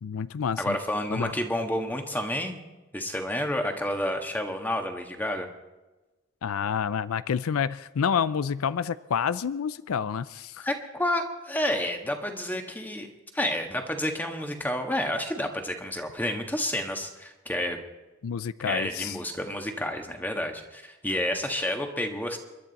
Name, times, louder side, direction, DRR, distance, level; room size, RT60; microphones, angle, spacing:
voice 1, 0.0-0.8 1.1-1.3 6.4-10.7 18.2-19.2, left 7 dB, 90° left, 17 dB, 0.4 m, -28 dB
voice 2, 0.6-2.6 2.9-5.5 10.6-13.1 13.3-17.8 18.6-22.4, left 1 dB, 10° left, 4 dB, 1.5 m, -30 dB
29.0 x 11.5 x 4.1 m, 1.1 s
head